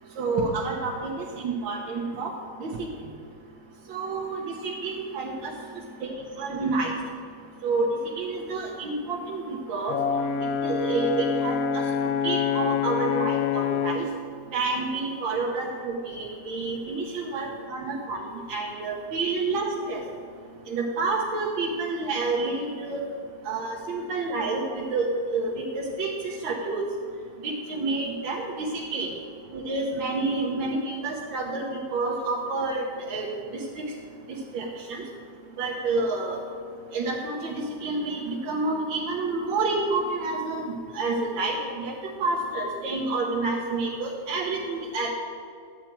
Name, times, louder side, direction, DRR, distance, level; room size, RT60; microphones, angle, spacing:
voice 1, 0.2-1.1 1.4-2.3 2.6-2.9 3.9-4.4 4.8-5.5 6.0-6.1 6.4-6.9 7.6-7.9 8.2-10.0 10.6-11.8 12.2-14.0 14.5-18.2 18.5-20.0 20.7-23.0 23.5-26.1 26.4-26.8 27.4-29.1 29.5-31.6 31.9-33.3 34.5-35.0 35.6-36.4 36.9-40.6 41.0-41.9 42.2-45.1, right 3 dB, 85° right, -3 dB, 1.8 m, -28 dB
Brass instrument, 9.9-14.1, left 7 dB, 75° left, 0.8 m, -26 dB
12.0 x 8.8 x 4.5 m, 2.4 s
omnidirectional pair, 2.1 m